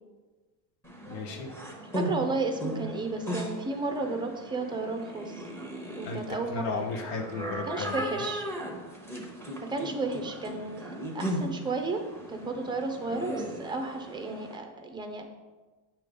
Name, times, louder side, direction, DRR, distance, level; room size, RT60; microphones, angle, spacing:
sound 1, 0.8-14.6, equal, 5° left, 0.9 m, -37 dB
voice 1, 1.1-1.5 6.0-8.0, left 4 dB, 85° left, 3 dB, 1.3 m, -35 dB
voice 2, 1.9-5.4 6.0-6.9 7.7-8.4 9.7-12.0 12.3-15.3, right 3 dB, 10° right, 4 dB, 0.4 m, -33 dB
8.3 x 3.0 x 5.1 m, 1.3 s
cardioid pair, 140°, 50 cm